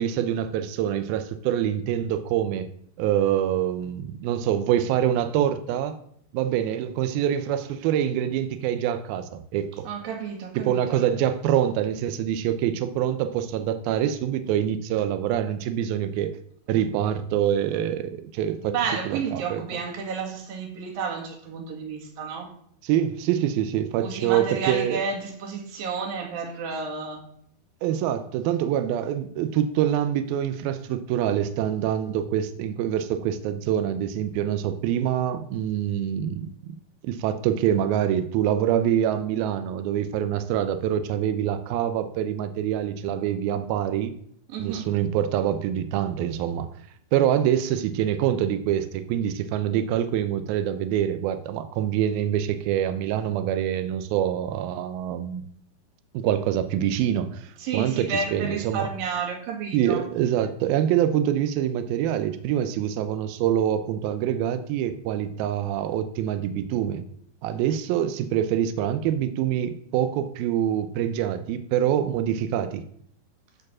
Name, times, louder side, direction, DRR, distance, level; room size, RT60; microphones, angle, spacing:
voice 1, 0.0-2.7 3.0-6.0 6.3-9.9 10.6-16.4 16.7-18.8 19.1-19.6 22.8-25.0 27.8-36.8 37.0-44.1 44.6-46.7 47.1-55.5 56.1-58.9 59.7-67.0 67.4-72.8, right 10 dB, 85° right, 10 dB, 2.1 m, -25 dB
voice 2, 9.9-11.1 18.6-22.5 24.0-27.2 44.5-44.9 57.6-60.0, right 5 dB, 60° right, 1 dB, 3.4 m, -31 dB
13.5 x 4.9 x 6.1 m, 0.65 s
omnidirectional pair, 5.1 m